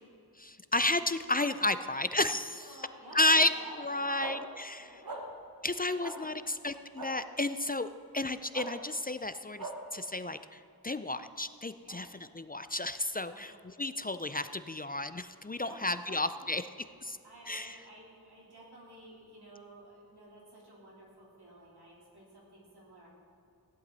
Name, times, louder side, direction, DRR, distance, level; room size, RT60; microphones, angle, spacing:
voice 1, 0.4-2.9 3.1-3.5 3.8-5.0 5.6-7.9 8.1-12.1 12.3-16.7 17.0-17.2 17.5-17.8, left 2 dB, 25° left, 12 dB, 0.4 m, -32 dB
voice 2, 2.6-4.3 4.8-5.3 5.6-6.8 11.8-12.0 13.2-13.5 15.5-16.8 17.2-23.1, right 1 dB, 90° right, -4 dB, 3.5 m, -52 dB
sound 1, 4.2-4.3 5.1-5.2 6.0-6.1 7.0-7.1 8.5-8.7 9.6-9.7, right 3 dB, 65° right, 1.6 m, -39 dB
15.5 x 11.0 x 4.0 m, 2.7 s
wide cardioid pair, 55°, 38 cm